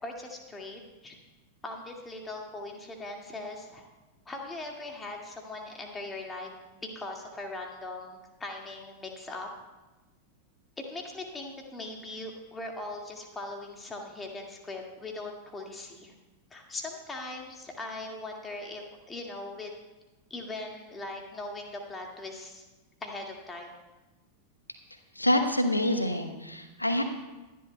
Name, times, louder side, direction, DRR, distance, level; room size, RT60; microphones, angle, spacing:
voice 1, 0.0-1.2 1.6-3.9 4.3-9.5 10.8-16.1 16.5-19.7 20.3-22.6 23.0-23.8, left 2 dB, 15° left, 1 dB, 1.9 m, -40 dB
voice 2, 25.1-27.0, left 1 dB, 85° left, 7 dB, 1.1 m, -26 dB
24.0 x 11.0 x 2.2 m, 1.1 s
figure-of-eight pair, 90°, 0 cm